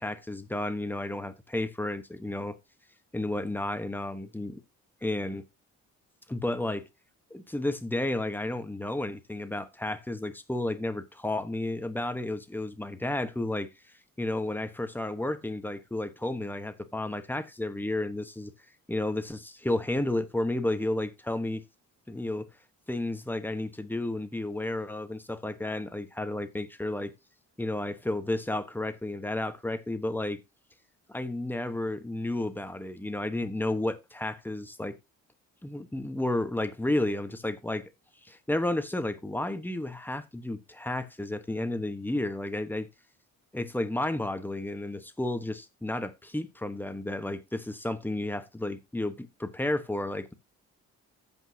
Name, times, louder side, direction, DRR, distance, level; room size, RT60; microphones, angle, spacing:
voice 1, 0.0-2.6 3.1-4.6 5.0-5.4 6.3-6.9 7.3-13.7 14.2-18.5 18.9-21.6 22.1-22.5 22.9-27.1 27.6-30.4 31.1-35.0 35.6-37.9 38.2-42.9 43.5-50.3, left 1 dB, 5° left, 1.2 m, -32 dB
14.5 x 5.4 x 2.8 m
cardioid pair, 90°, 30 cm